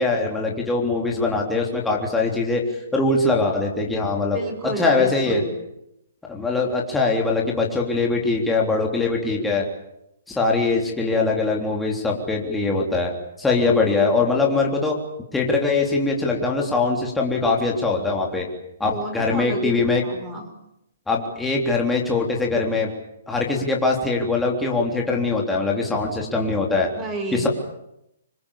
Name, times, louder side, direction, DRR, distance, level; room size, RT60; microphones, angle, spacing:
voice 1, 0.0-2.6 2.9-4.4 4.8-5.4 6.3-9.7 10.3-13.1 13.4-14.9 15.3-18.5 18.8-20.0 21.1-22.9 23.3-26.9 27.3-27.5, left 3 dB, 5° left, -1 dB, 3.5 m, -22 dB
voice 2, 4.3-5.6 18.8-20.5 27.0-27.5, right 2 dB, 15° right, 5 dB, 5.3 m, -31 dB
26.0 x 21.0 x 8.7 m, 0.82 s
hypercardioid pair, 155°, 0 cm